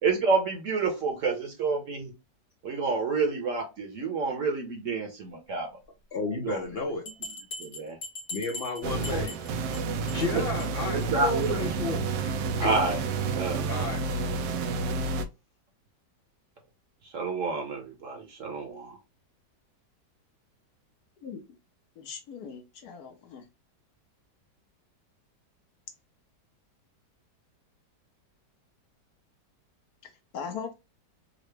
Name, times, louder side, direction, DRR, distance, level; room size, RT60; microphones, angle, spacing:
voice 1, 0.0-2.1 2.6-5.7 6.4-6.6 7.6-8.0 9.1-9.2 10.2-10.4 10.8-11.6 12.6-13.0 13.3-13.7 17.1-19.0, right 4 dB, 55° right, 1.0 m, -29 dB
voice 2, 6.1-7.1 8.3-12.3 12.6-12.7 13.3-14.0, left 3 dB, 85° left, 0.5 m, -33 dB
Bell, 7.0-9.8 10.1-10.3 10.6-10.7 11.0-11.1 11.4-11.5, left 2 dB, 50° left, 1.4 m, -40 dB
sound 1, 8.8-15.3, right 4 dB, 85° right, 1.2 m, -30 dB
voice 3, 22.0-23.4 30.3-30.7, left 6 dB, 70° left, 1.1 m, -39 dB
3.8 x 2.0 x 3.2 m
omnidirectional pair, 1.9 m